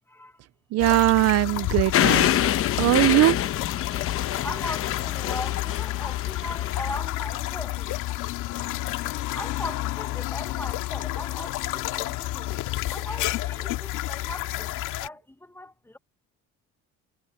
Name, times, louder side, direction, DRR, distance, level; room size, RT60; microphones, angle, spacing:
voice 1, 0.1-0.4 4.4-8.0 9.3-16.0, left 1 dB, 5° left, 1.0 m, -39 dB
voice 2, 0.7-2.3 2.8-3.5, right 17 dB, 55° right, 0.4 m, -20 dB
sound 1, 0.8-15.1, left 16 dB, 75° left, 2.1 m, -30 dB
sound 2, 1.9-7.0, left 11 dB, 45° left, 0.9 m, -26 dB
cardioid pair, 120°, 31 cm